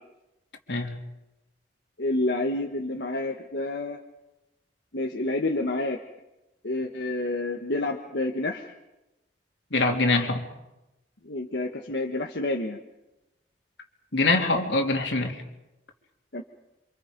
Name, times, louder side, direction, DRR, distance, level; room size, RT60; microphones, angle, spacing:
voice 1, 2.0-4.0 4.9-6.0 6.6-8.7 11.2-12.8 16.3-16.4, left 2 dB, 70° left, 2 dB, 1.5 m, -29 dB
voice 2, 9.7-10.4 14.1-15.4, left 3 dB, 85° left, 2 dB, 3.3 m, -24 dB
28.5 x 27.0 x 5.3 m, 0.97 s
head